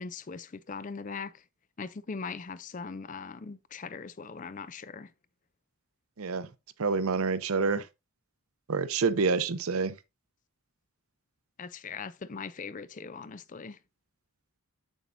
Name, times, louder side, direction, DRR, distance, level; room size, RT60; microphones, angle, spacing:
voice 1, 0.0-1.4 1.8-5.1 11.6-13.8, left 5 dB, 35° left, 0.4 m, -40 dB
voice 2, 6.2-6.5 6.8-7.8 8.7-9.9, right 4 dB, 75° right, 0.6 m, -27 dB
7.3 x 7.1 x 2.6 m
head